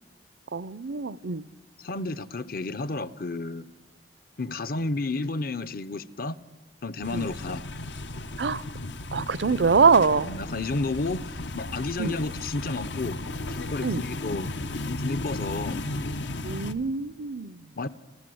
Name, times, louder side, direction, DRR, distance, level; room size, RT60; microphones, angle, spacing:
voice 1, 0.5-1.5 7.1-7.2 8.4-8.6 9.1-10.3 12.0-12.2 13.8-14.0 16.4-17.6, right 5 dB, 70° right, 0.6 m, -24 dB
voice 2, 1.8-3.7 4.4-6.4 6.8-7.6 10.2-13.2 13.5-14.5 14.8-15.8 17.8-17.9, left 3 dB, 55° left, 0.8 m, -31 dB
sound 1, 7.0-16.7, left 2 dB, 80° left, 1.1 m, -35 dB
29.0 x 14.5 x 7.8 m
head